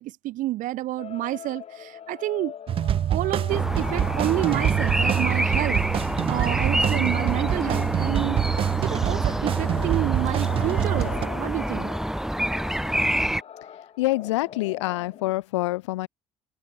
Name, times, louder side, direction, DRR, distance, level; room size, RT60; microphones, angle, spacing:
voice 1, 0.0-2.5 3.1-11.9, right 16 dB, 60° right, 0.9 m, -29 dB
sound 1, 1.0-15.3, left 8 dB, 45° left, 1.4 m, -42 dB
sound 2, 2.7-11.3, right 10 dB, 40° right, 0.4 m, -25 dB
sound 3, 3.5-13.4, equal, 5° right, 1.7 m, -27 dB
voice 2, 14.0-16.1, left 19 dB, 80° left, 0.4 m, -26 dB
hypercardioid pair, 60°, 15 cm